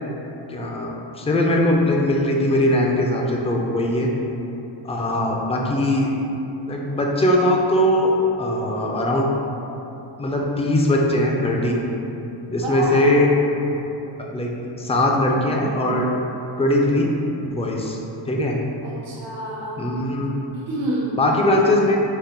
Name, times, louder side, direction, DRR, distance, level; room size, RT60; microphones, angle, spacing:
voice 1, 0.5-4.1 4.8-6.1 6.7-9.3 10.2-11.8 12.5-13.3 13.6-13.8 14.2-14.5 14.8-16.1 16.6-17.1 17.5-18.0 18.3-18.6 19.8-20.5 21.2-22.0, left 1 dB, 15° left, -1 dB, 0.3 m, -20 dB
voice 2, 12.6-13.1 18.8-19.8 20.5-21.2 21.5-21.6, right 1 dB, 85° right, -7 dB, 0.9 m, -28 dB
5.0 x 2.1 x 4.4 m, 3.0 s
cardioid pair, 135°, 45 cm